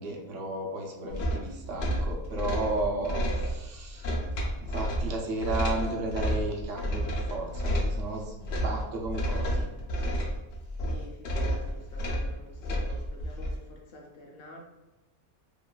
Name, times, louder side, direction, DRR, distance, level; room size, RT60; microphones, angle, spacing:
voice 1, 0.0-4.2 4.6-9.7, right 2 dB, 80° right, 0 dB, 0.9 m, -34 dB
sound 1, 1.1-13.6, equal, 80° left, 0.9 m, -31 dB
voice 2, 10.8-14.6, left 1 dB, 60° left, 0 dB, 0.7 m, -49 dB
3.0 x 2.2 x 2.3 m, 1.1 s
omnidirectional pair, 1.3 m